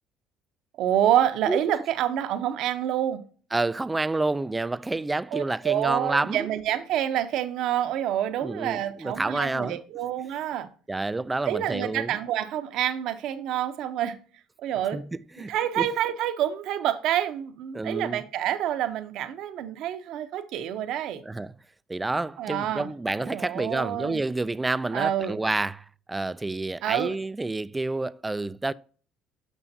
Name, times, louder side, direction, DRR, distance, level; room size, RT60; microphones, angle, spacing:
voice 1, 0.8-3.2 5.3-10.7 11.5-14.2 14.6-15.0 15.5-21.2 22.4-22.9 23.2-24.2 24.9-25.4 26.8-27.1, right 11 dB, 70° right, 0.7 m, -27 dB
voice 2, 3.5-6.5 8.4-9.8 10.9-12.2 14.9-15.0 15.4-15.9 17.7-18.2 21.3-21.5 21.9-28.7, right 2 dB, 15° right, 0.3 m, -29 dB
6.9 x 6.2 x 2.7 m
supercardioid pair, 80°, 0 cm